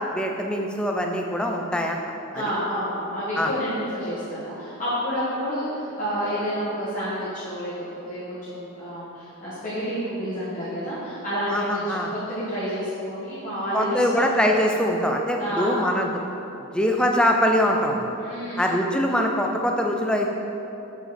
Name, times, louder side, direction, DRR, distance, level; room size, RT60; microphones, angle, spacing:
voice 1, 0.1-2.0 2.3-2.4 3.4-3.5 11.5-12.1 13.7-16.1 16.7-18.1 18.6-20.3, equal, 5° left, 1 dB, 0.4 m, -23 dB
voice 2, 2.3-14.3 15.4-15.9 18.2-18.7, equal, 35° left, -12 dB, 1.5 m, -29 dB
7.5 x 5.1 x 4.2 m, 3.0 s
head